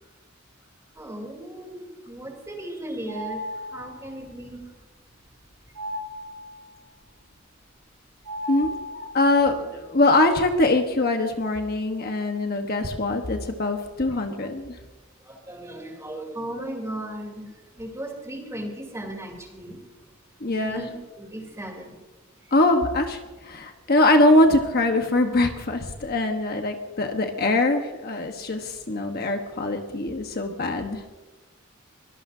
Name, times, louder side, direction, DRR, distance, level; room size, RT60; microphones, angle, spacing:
voice 1, 0.9-3.4 3.7-4.6 15.3-17.5 17.7-19.8 20.6-22.0 25.4-25.5, right 1 dB, 15° right, 1 dB, 3.4 m, -36 dB
sound 1, 3.1-4.1 5.8-6.7 8.3-9.4, left 1 dB, 70° right, 1.9 m, -35 dB
voice 2, 8.5-14.7 20.4-20.9 22.5-23.2 23.4-31.0, left 2 dB, 50° left, 4 dB, 1.2 m, -22 dB
23.5 x 18.0 x 2.8 m, 1.2 s
head